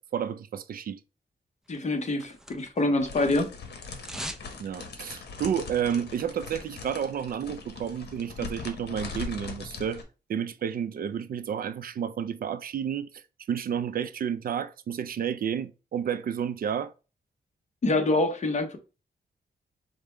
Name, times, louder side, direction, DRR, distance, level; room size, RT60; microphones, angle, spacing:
voice 1, 0.1-1.0 4.6-10.0 10.3-13.2 13.5-16.9, right 8 dB, 60° right, 0.4 m, -31 dB
voice 2, 1.7-3.5 17.8-18.8, left 2 dB, 45° left, 0.9 m, -25 dB
sound 1, 1.7-3.0 3.2-4.5 4.8-4.9, equal, 5° right, 0.5 m, -41 dB
sound 2, 3.0-10.0, left 4 dB, 75° left, 1.0 m, -41 dB
5.1 x 2.1 x 4.4 m
wide cardioid pair, 145°, 17 cm